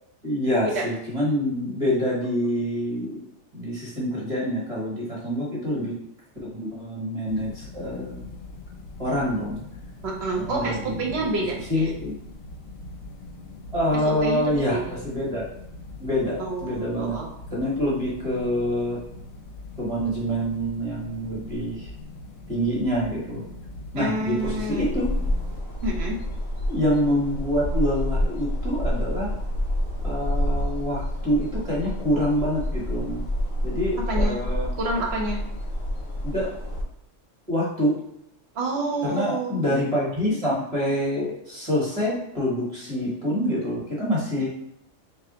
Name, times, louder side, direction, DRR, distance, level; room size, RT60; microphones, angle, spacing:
voice 1, 0.2-3.2 3.5-5.9 6.4-8.3 9.0-9.6 10.4-11.2 11.7-12.2 13.7-15.4 16.0-17.2 17.5-19.0 19.8-21.9 22.5-23.4 23.9-25.1 26.7-29.3 30.0-33.2 33.6-34.7 36.2-36.5 37.5-38.0 39.0-44.5, equal, 30° right, -6 dB, 1.0 m, -26 dB
sound 1, 7.3-25.6, left 2 dB, 80° left, 0.9 m, -41 dB
voice 2, 10.0-11.9 14.0-14.4 14.7-14.8 16.4-17.3 24.0-24.9 25.8-26.2 34.1-34.4 34.8-35.4 38.5-39.7, right 2 dB, 60° right, 1 dB, 0.9 m, -28 dB
sound 2, 24.4-36.8, equal, 55° left, 0.9 m, -28 dB
3.2 x 2.4 x 3.8 m, 0.77 s
omnidirectional pair, 1.3 m